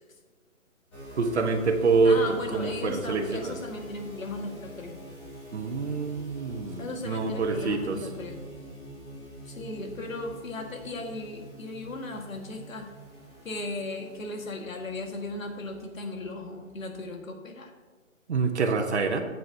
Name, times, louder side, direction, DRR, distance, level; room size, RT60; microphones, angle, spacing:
sound 1, 0.9-17.2, right 1 dB, 15° left, 2.5 m, -45 dB
voice 1, 1.2-3.6 5.5-8.0 18.3-19.2, right 4 dB, 55° right, 6 dB, 1.2 m, -26 dB
voice 2, 2.0-5.0 6.8-8.4 9.4-12.9 13.4-17.7, left 2 dB, 70° left, 4 dB, 1.8 m, -36 dB
13.0 x 8.6 x 2.8 m, 1.5 s
hypercardioid pair, 160°, 41 cm